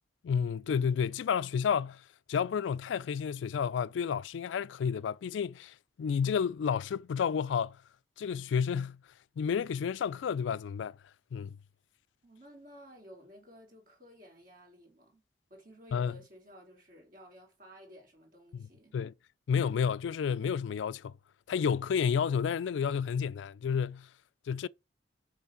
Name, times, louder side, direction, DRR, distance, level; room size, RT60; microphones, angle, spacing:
voice 1, 0.2-2.0 2.3-7.8 8.2-9.0 9.4-11.0 11.3-11.6 15.9-16.2 18.5-18.7 18.9-19.1 19.5-21.2 21.5-24.1 24.5-24.7, left 7 dB, 90° left, 0.3 m, -31 dB
voice 2, 12.2-15.2 15.5-19.0, equal, 50° right, 3.2 m, -54 dB
7.1 x 3.3 x 5.7 m
head